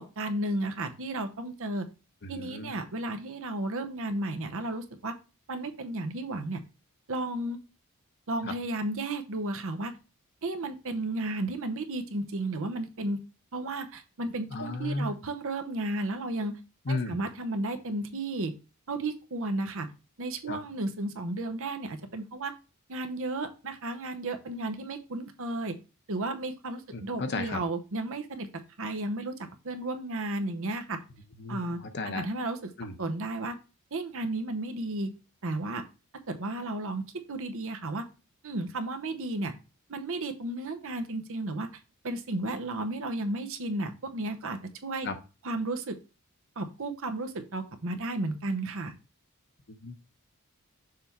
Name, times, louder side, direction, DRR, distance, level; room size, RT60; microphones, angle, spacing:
voice 1, 0.0-1.9 2.3-5.1 5.5-6.6 7.1-7.6 8.3-9.9 10.4-13.2 13.5-16.6 16.9-18.5 18.9-19.9 20.2-22.5 22.9-25.8 26.1-28.5 28.8-29.4 29.6-31.0 31.5-31.8 32.0-32.7 33.0-33.6 33.9-35.1 35.4-35.8 36.3-38.1 38.4-39.5 39.9-41.7 42.0-45.1 45.4-46.0 46.6-49.0, right 2 dB, 65° right, 7 dB, 0.9 m, -33 dB
voice 2, 2.2-2.7 8.4-8.5 14.5-15.2 16.9-17.2 20.5-20.6 26.9-27.6 31.4-32.2 32.8-32.9 45.0-45.1 49.7-49.9, left 3 dB, 50° left, 7 dB, 0.8 m, -34 dB
6.7 x 3.5 x 4.4 m, 0.31 s
head